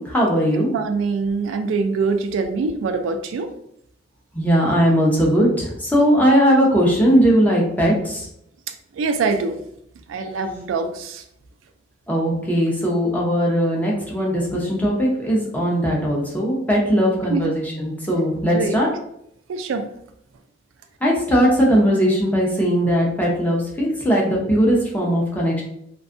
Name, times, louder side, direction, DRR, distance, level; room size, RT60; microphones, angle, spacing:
voice 1, 0.0-0.7 4.3-8.3 12.1-18.9 21.0-25.6, equal, 10° left, -3 dB, 0.6 m, -19 dB
voice 2, 0.7-3.5 9.0-9.6 10.1-11.2 17.3-17.4 18.5-18.8 19.5-19.8, right 4 dB, 80° right, 7 dB, 0.3 m, -23 dB
2.5 x 2.3 x 2.4 m, 0.74 s
head